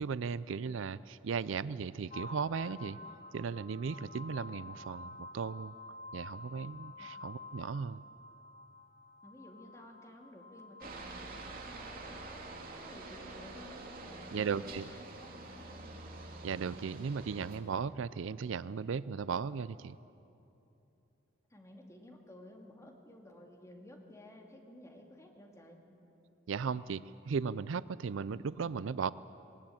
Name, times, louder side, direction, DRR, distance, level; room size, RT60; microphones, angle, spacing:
voice 1, 0.0-3.0 3.3-5.7 6.1-8.0 14.3-14.9 16.4-20.0 26.5-29.1, right 5 dB, 75° right, 18 dB, 0.4 m, -36 dB
sound 1, 2.1-12.3, left 2 dB, 45° left, 1.6 m, -50 dB
voice 2, 9.2-12.5 12.8-15.9 21.5-25.9, left 1 dB, 15° left, 1 dB, 2.4 m, -54 dB
Aircraft, 10.8-17.6, right 2 dB, 50° right, 2.5 m, -47 dB
20.0 x 20.0 x 8.7 m, 2.9 s
head